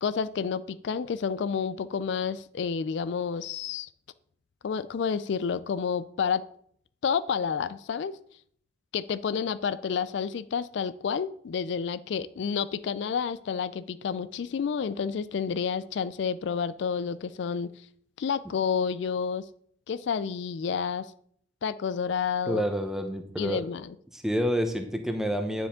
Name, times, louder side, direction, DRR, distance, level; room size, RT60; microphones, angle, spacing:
voice 1, 0.0-3.9 4.6-6.4 7.0-8.1 8.9-17.7 18.2-19.4 19.9-21.1 21.6-22.6 23.4-23.9, left 6 dB, 65° left, 15 dB, 0.3 m, -30 dB
voice 2, 22.5-23.7 24.1-25.7, equal, ahead, 5 dB, 0.8 m, -28 dB
9.7 x 7.1 x 3.7 m, 0.64 s
head